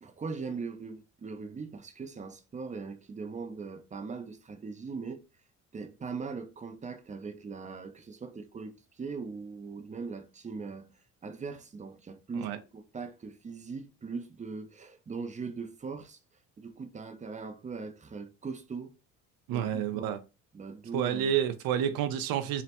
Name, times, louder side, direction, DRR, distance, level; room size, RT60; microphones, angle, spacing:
voice 1, 0.0-5.2 5.7-10.9 11.2-16.2 16.6-18.9 19.5-20.2 20.5-21.3, right 4 dB, 20° right, 0.5 m, -40 dB
voice 2, 19.5-20.2 20.9-22.6, right 9 dB, 80° right, 0.6 m, -29 dB
3.2 x 2.0 x 2.9 m
supercardioid pair, 75°, 36 cm